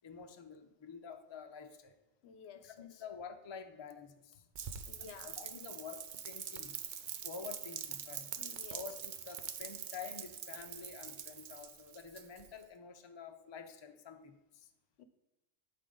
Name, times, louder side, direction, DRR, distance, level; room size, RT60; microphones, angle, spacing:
voice 1, 0.0-1.9 2.6-4.4 5.0-6.8 7.2-8.3 8.7-14.7, left 6 dB, 35° left, 0.4 m, -49 dB
voice 2, 2.2-3.0 4.9-5.4 8.4-8.8 15.0-15.1, left 7 dB, 65° left, 0.8 m, -53 dB
Rain, 4.5-12.6, right 8 dB, 55° right, 0.5 m, -44 dB
11.0 x 4.6 x 3.8 m
omnidirectional pair, 1.3 m